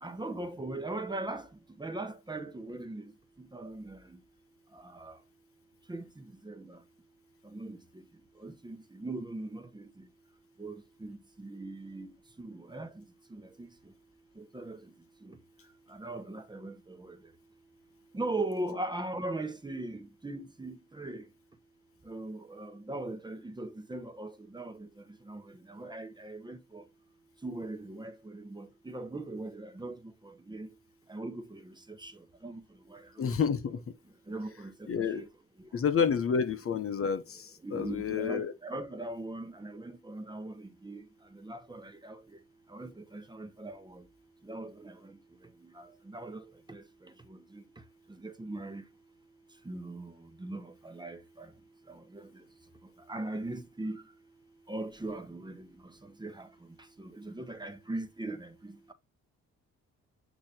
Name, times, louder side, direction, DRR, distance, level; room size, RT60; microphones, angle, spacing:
voice 1, 0.0-1.5 1.8-3.1 3.4-4.2 4.7-5.2 5.9-6.8 7.4-8.1 8.4-10.1 10.6-12.1 12.4-13.0 13.3-13.9 14.4-14.9 15.2-15.4 15.9-17.2 18.1-21.3 22.0-26.8 27.4-30.7 31.1-32.6 32.9-33.3 34.3-35.3 35.6-35.7 37.6-42.4 42.7-44.1 44.4-45.2 45.6-47.6 48.1-48.8 49.6-51.5 51.9-52.4 53.1-54.0 54.7-56.5 57.0-58.9, right 2 dB, 15° right, 1.1 m, -40 dB
voice 2, 33.2-33.8 34.9-35.2 35.7-38.5, left 6 dB, 50° left, 1.0 m, -29 dB
8.5 x 2.9 x 4.3 m
cardioid pair, 90°, 30 cm